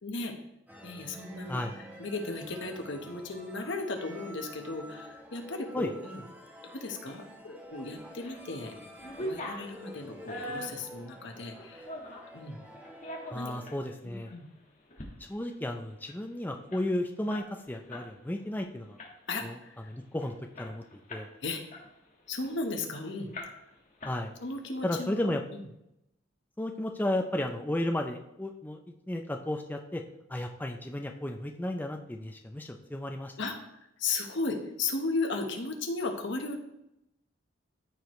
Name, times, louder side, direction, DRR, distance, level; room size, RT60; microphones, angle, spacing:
voice 1, 0.0-0.3 0.8-6.2 6.6-8.7 9.2-11.9 12.3-12.6 13.3-13.5 14.0-14.5 19.3-19.7 21.4-21.6 22.3-23.3 24.4-25.6 33.4-33.6 34.0-36.6, left 3 dB, 60° left, 4 dB, 1.2 m, -35 dB
sound 1, 0.7-13.7, equal, 10° right, 1.1 m, -48 dB
sound 2, 7.9-8.4 8.8-12.3 12.8-13.8 14.3-14.4 14.8-15.1 15.4-15.5 15.8-18.1 18.4-18.6 19.0-19.4 19.9-20.0 20.2-21.3 21.7-22.9 23.3-23.7 24.0-24.6, equal, 40° left, 1.5 m, -42 dB
voice 2, 13.3-14.3 15.3-19.0 19.4-19.6 19.9-20.8 21.1-21.3 24.0-24.3 24.8-25.4 26.6-28.8 29.1-30.0 30.3-33.3, left 1 dB, 10° left, 3 dB, 0.4 m, -33 dB
13.5 x 4.8 x 3.1 m, 0.85 s
head